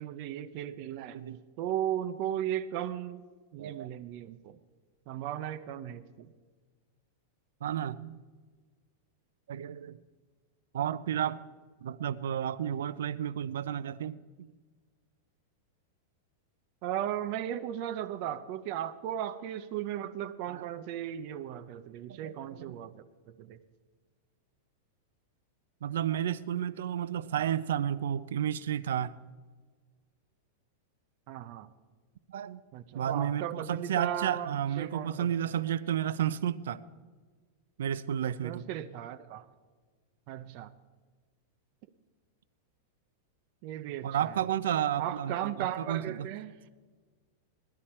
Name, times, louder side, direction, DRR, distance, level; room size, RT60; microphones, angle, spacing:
voice 1, 0.0-1.2 1.6-3.2 3.5-4.6 5.1-6.3 16.8-23.6 27.4-27.5 31.3-31.7 32.7-35.3 38.4-39.5 40.3-40.7 43.6-44.4 45.0-46.7, right 11 dB, 40° right, 0.6 m, -36 dB
voice 2, 7.6-8.2 9.5-10.0 10.7-11.4 11.8-14.2 20.5-20.7 22.1-22.8 25.8-29.1 32.3-32.6 32.9-36.8 37.8-38.7 44.0-46.3, right 10 dB, 90° right, 0.5 m, -32 dB
18.0 x 12.5 x 4.3 m
supercardioid pair, 170°, 0 cm